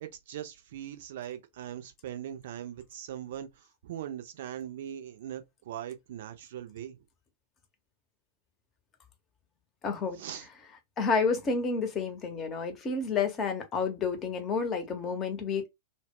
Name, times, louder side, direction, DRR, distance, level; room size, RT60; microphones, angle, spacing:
voice 1, 0.0-7.0 10.1-10.5, right 10 dB, 55° right, 0.5 m, -40 dB
voice 2, 9.8-10.7 11.0-15.7, left 5 dB, 25° left, 0.7 m, -30 dB
2.1 x 2.0 x 3.4 m
figure-of-eight pair, 100°, 0 cm